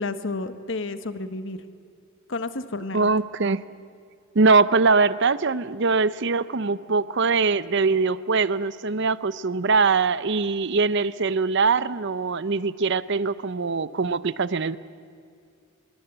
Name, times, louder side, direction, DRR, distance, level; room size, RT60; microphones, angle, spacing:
voice 1, 0.0-1.6 2.3-3.1, left 3 dB, 60° left, 11 dB, 1.3 m, -31 dB
voice 2, 2.9-3.6 4.3-14.8, right 4 dB, 55° right, 16 dB, 0.7 m, -22 dB
25.5 x 23.0 x 8.0 m, 2.4 s
head